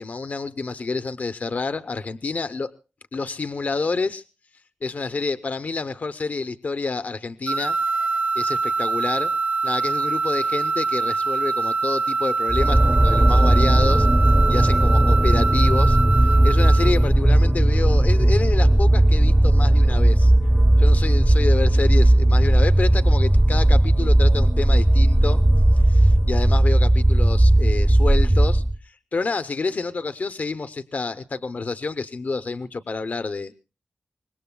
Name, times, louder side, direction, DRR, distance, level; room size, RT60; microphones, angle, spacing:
voice 1, 0.0-2.7 3.1-4.2 4.8-7.8 8.4-9.3 9.6-14.1 14.5-20.3 20.8-25.4 25.7-33.5, left 4 dB, 60° left, 11 dB, 0.7 m, -28 dB
sound 1, 7.5-17.0, right 4 dB, 55° right, 0.7 m, -24 dB
sound 2, 12.5-28.8, right 1 dB, 20° right, 0.7 m, -16 dB
24.5 x 20.0 x 2.2 m, 0.33 s
cardioid pair, 65°, 3 cm